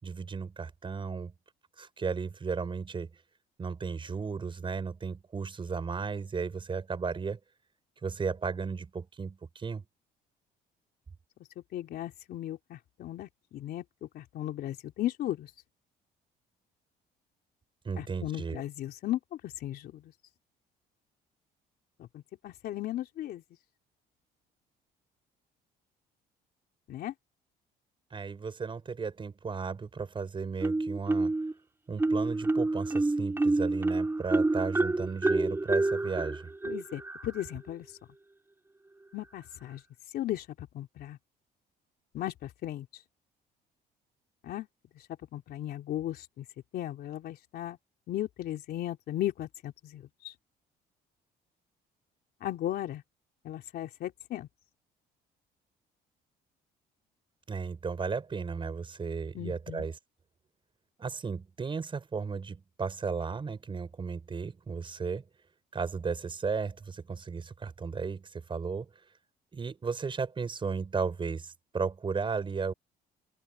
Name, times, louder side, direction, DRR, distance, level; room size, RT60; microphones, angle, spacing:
voice 1, 0.0-1.3 1.8-3.1 3.6-7.4 8.0-9.8 17.8-18.6 28.1-31.3 31.9-36.5 57.5-60.0 61.0-65.2 65.7-68.9 69.5-72.7, right 5 dB, 30° right, 5.9 m, -35 dB
voice 2, 11.7-13.8 14.1-15.5 18.0-19.2 19.6-20.0 22.0-22.1 22.4-23.4 26.9-27.1 36.7-37.9 39.1-39.8 40.1-41.2 42.1-42.3 42.6-42.9 44.4-44.7 45.3-46.4 46.7-47.8 48.1-50.3 52.4-53.0 53.5-54.5 59.4-59.9, left 13 dB, 70° left, 3.4 m, -36 dB
Marimba xylophone, 30.6-31.5 32.0-37.5, right 2 dB, 15° right, 4.2 m, -28 dB
open air
cardioid pair, 110°, 17 cm